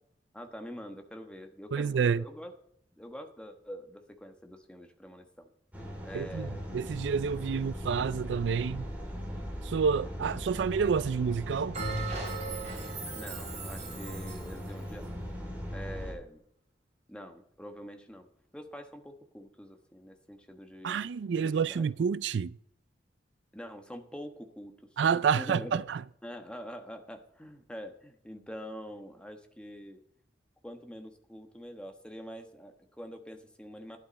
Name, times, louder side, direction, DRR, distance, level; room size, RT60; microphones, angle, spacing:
voice 1, 0.3-2.5 2.9-5.5 6.0-6.7 13.1-15.1 15.7-16.4 17.1-18.3 18.5-21.9 23.5-24.7 25.3-25.8 26.2-30.0 30.6-34.0, equal, 5° left, 1.2 m, -45 dB
voice 2, 1.7-2.2 6.1-8.9 9.6-11.8 20.8-22.5 25.0-26.0, right 6 dB, 75° right, 0.4 m, -29 dB
sound 1, 5.7-16.1, equal, 10° right, 3.6 m, -39 dB
Bell, 11.7-14.5, right 3 dB, 40° right, 3.9 m, -37 dB
12.0 x 10.5 x 4.1 m
head